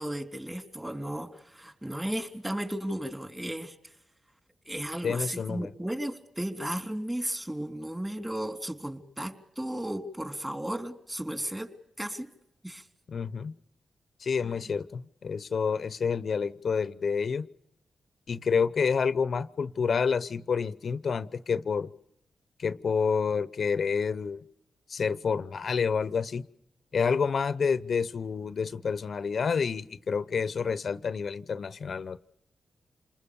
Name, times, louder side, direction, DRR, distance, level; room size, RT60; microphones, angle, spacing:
voice 1, 0.0-4.0 4.7-11.7 12.0-12.3 12.6-12.9 14.4-14.5, right 1 dB, 15° right, 7 dB, 3.6 m, -35 dB
voice 2, 5.0-5.7 13.1-13.5 14.2-17.5 18.3-21.9 22.6-24.4 24.9-26.5 26.9-32.2, left 5 dB, 65° left, 16 dB, 0.8 m, -28 dB
28.0 x 20.5 x 7.1 m, 0.78 s
supercardioid pair, 45°, 0 cm